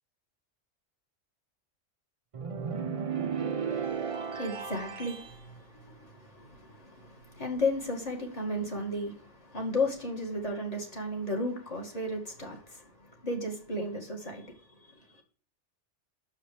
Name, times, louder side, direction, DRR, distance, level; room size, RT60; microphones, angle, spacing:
sound 1, 2.3-5.4, right 6 dB, 40° right, 0.5 m, -34 dB
voice 1, 3.7-12.9 13.2-14.5, left 1 dB, 35° left, 2.1 m, -34 dB
6.6 x 4.9 x 6.8 m
omnidirectional pair, 1.2 m